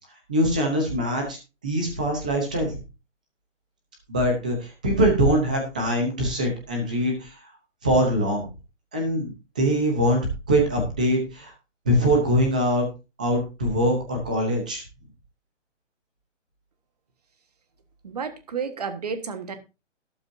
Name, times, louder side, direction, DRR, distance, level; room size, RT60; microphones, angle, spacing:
voice 1, 0.3-1.4 1.6-2.8 4.1-7.4 7.8-8.5 8.9-10.2 10.5-11.5 11.8-12.9 13.2-14.8, equal, 5° right, 2 dB, 0.8 m, -23 dB
voice 2, 18.0-19.5, right 5 dB, 30° right, 9 dB, 1.5 m, -31 dB
12.5 x 12.0 x 2.7 m, 0.28 s
hypercardioid pair, 180°, 37 cm